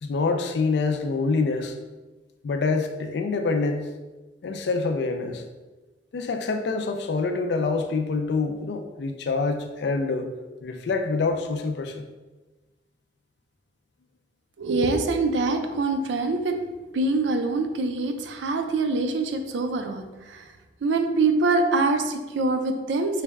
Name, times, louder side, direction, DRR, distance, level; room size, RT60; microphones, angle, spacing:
voice 1, 0.0-1.7 2.4-3.9 4.4-5.4 6.1-10.3 10.6-12.1, left 4 dB, 65° left, 6 dB, 0.4 m, -26 dB
voice 2, 14.6-16.6 16.9-20.5 20.8-23.2, right 3 dB, 80° right, 6 dB, 0.4 m, -24 dB
4.0 x 2.2 x 3.4 m, 1.2 s
head